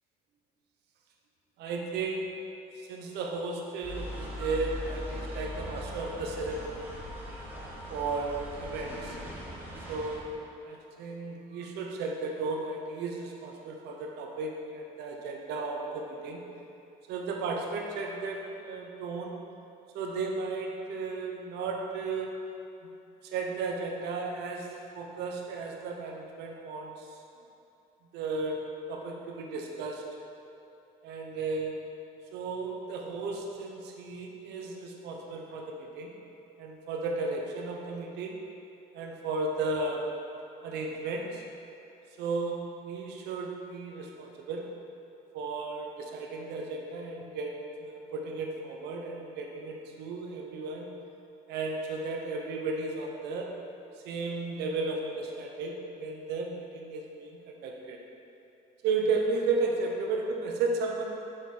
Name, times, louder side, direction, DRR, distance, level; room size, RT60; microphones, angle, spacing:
voice 1, 1.6-6.9 7.9-9.2 9.9-16.4 17.1-19.3 19.9-22.3 22.8-22.9 23.2-24.7 24.9-27.1 28.1-28.6 28.9-30.0 31.0-31.7 32.3-36.2 36.6-38.4 38.9-40.0 40.6-41.4 42.2-44.6 45.3-47.5 47.8-50.9 51.5-53.5 54.0-58.0 58.8-61.1, right 3 dB, 85° right, 1 dB, 0.9 m, -34 dB
sound 1, 3.8-10.2, left 1 dB, 10° right, 1.4 m, -40 dB
6.3 x 4.7 x 4.3 m, 2.7 s
cardioid pair, 110°, 17 cm